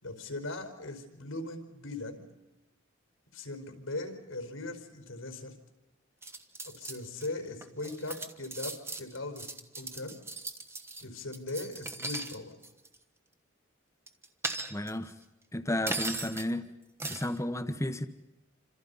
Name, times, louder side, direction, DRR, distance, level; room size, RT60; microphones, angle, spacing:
voice 1, 0.0-2.3 3.3-5.5 6.6-10.2 11.0-12.6, left 2 dB, 90° left, 4.9 m, -39 dB
sound 1, 6.2-7.3 7.6-12.4 12.6-12.9 14.1-15.1 15.9-16.5 17.0-17.4, right 2 dB, 10° right, 1.2 m, -38 dB
voice 2, 14.7-15.1 15.5-16.7 17.0-18.1, left 1 dB, 15° left, 1.2 m, -32 dB
28.5 x 26.5 x 5.6 m
head